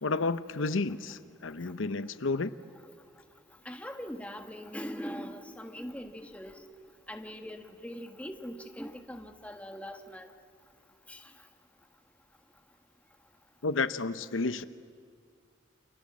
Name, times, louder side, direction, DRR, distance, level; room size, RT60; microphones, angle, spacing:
voice 1, 0.0-2.5 13.6-14.6, left 3 dB, 85° left, 13 dB, 0.8 m, -31 dB
voice 2, 3.6-6.6 7.1-10.3 11.1-11.2, equal, 5° left, 5 dB, 1.4 m, -41 dB
29.0 x 27.0 x 7.5 m, 2.2 s
head